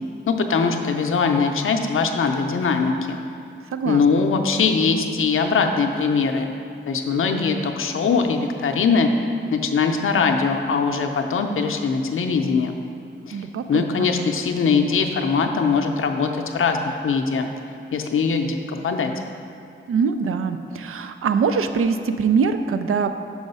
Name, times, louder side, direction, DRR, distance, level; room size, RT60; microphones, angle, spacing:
voice 1, 0.3-3.2 3.8-6.5 6.9-9.1 9.5-12.7 13.3-16.8 17.0-17.5 17.9-19.1, left 5 dB, 75° left, 4 dB, 0.5 m, -21 dB
voice 2, 13.3-14.1 19.9-23.2, right 5 dB, 85° right, 9 dB, 0.4 m, -23 dB
6.2 x 4.7 x 5.4 m, 2.5 s
wide cardioid pair, 125°, 21 cm